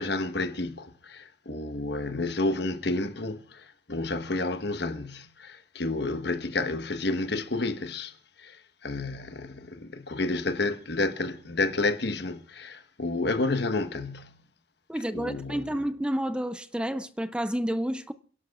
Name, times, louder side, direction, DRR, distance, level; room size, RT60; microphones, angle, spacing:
voice 1, 0.0-8.1 8.4-14.4 15.1-15.6, left 2 dB, 60° left, 1.2 m, -30 dB
voice 2, 14.9-18.1, equal, 5° right, 0.5 m, -30 dB
29.0 x 11.5 x 2.4 m
head